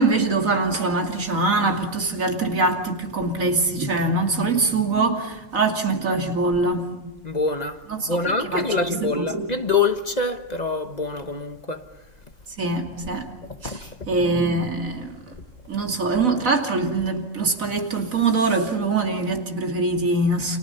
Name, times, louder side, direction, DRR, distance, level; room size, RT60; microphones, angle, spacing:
voice 1, 0.0-6.9 7.9-9.5 12.6-13.4 13.6-15.2 15.7-20.6, right 3 dB, 85° right, 3.1 m, -23 dB
voice 2, 7.2-7.8 8.1-11.8 13.6-13.9, left 4 dB, 35° left, 1.2 m, -25 dB
30.0 x 27.5 x 5.6 m
omnidirectional pair, 1.4 m